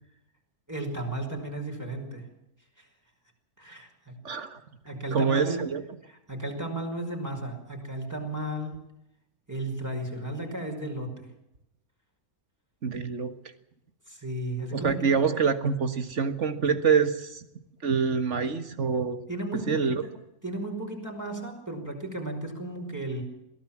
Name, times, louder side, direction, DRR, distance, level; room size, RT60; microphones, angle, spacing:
voice 1, 0.7-2.3 2.8-2.9 3.6-4.5 4.8-5.7 6.1-8.9 9.5-11.3 14.1-15.0 19.3-20.1 20.4-23.2, right 1 dB, 10° right, 2 dB, 5.3 m, -34 dB
voice 2, 4.2-4.6 5.1-5.8 12.8-13.3 14.7-17.4 17.8-19.2 19.7-20.0, right 6 dB, 50° right, 10 dB, 1.9 m, -26 dB
22.5 x 16.5 x 7.4 m, 0.85 s
omnidirectional pair, 1.6 m